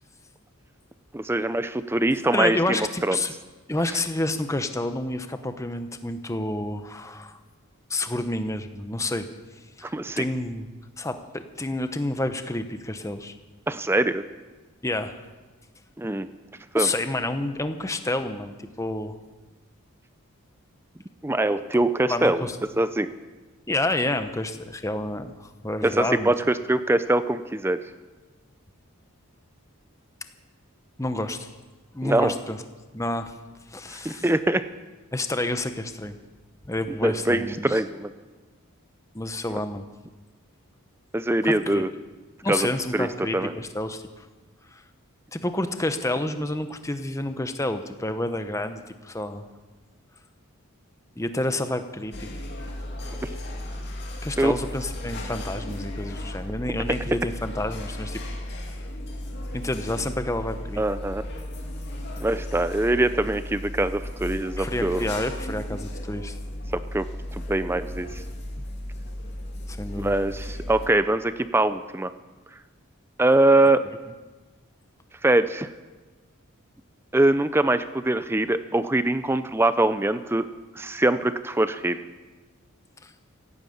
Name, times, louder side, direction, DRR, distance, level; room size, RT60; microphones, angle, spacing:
voice 1, 1.1-3.2 9.9-10.2 13.7-14.2 16.0-16.3 16.7-16.9 21.2-22.4 22.8-23.1 25.8-27.9 32.0-32.3 33.9-34.7 37.0-38.1 39.5-39.6 41.1-41.9 42.5-42.7 42.9-43.1 43.3-43.5 54.4-54.5 60.8-61.3 62.2-65.1 66.7-68.2 70.0-72.1 73.2-73.8 75.2-75.7 77.1-80.4 80.8-82.0, right 2 dB, 10° right, 12 dB, 0.4 m, -23 dB
voice 2, 2.3-3.3 3.7-7.4 7.9-9.3 9.8-10.7 11.0-13.4 14.8-15.2 16.7-19.1 22.1-22.6 23.7-26.3 31.0-31.5 31.9-32.6 32.9-33.3 33.7-34.3 35.1-36.2 36.6-37.8 39.1-39.9 41.4-41.8 42.4-44.3 44.7-44.8 45.3-49.5 51.2-52.3 54.2-58.2 59.5-60.8 64.6-66.4 69.7-70.1 83.0-83.1, left 1 dB, 15° left, 9 dB, 0.8 m, -29 dB
sound 1, 52.1-70.9, left 1 dB, 50° left, 2.4 m, -35 dB
16.0 x 9.4 x 8.5 m, 1.3 s
head